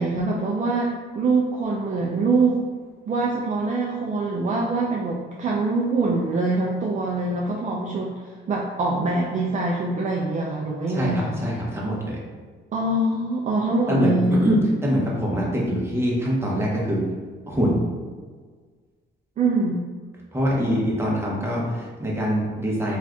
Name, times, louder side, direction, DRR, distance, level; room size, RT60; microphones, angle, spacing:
voice 1, 0.0-2.6 3.1-11.4 12.7-14.4 19.4-19.9, right 3 dB, 40° right, -2 dB, 0.4 m, -24 dB
voice 2, 10.9-12.2 13.9-17.0 17.5-17.8 20.3-23.0, equal, 10° right, -4 dB, 0.9 m, -24 dB
2.6 x 2.4 x 3.4 m, 1.5 s
cardioid pair, 90°, 20 cm